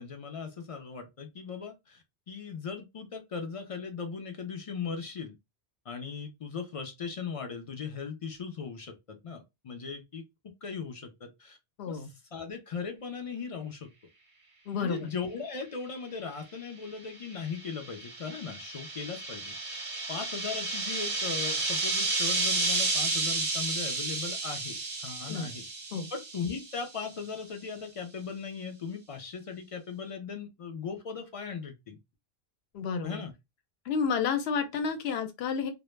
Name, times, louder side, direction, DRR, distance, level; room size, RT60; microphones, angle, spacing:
voice 1, 0.0-5.4 5.9-11.6 11.9-13.9 14.8-19.8 20.1-25.7 26.1-32.0 33.0-33.3, left 5 dB, 55° left, 0.3 m, -38 dB
voice 2, 11.8-12.1 14.7-15.1 25.3-25.5 25.9-26.1 32.7-33.2 33.9-35.7, left 6 dB, 75° left, 0.8 m, -30 dB
sound 1, 17.1-26.9, right 3 dB, 50° right, 0.5 m, -32 dB
2.0 x 2.0 x 3.1 m
omnidirectional pair, 1.1 m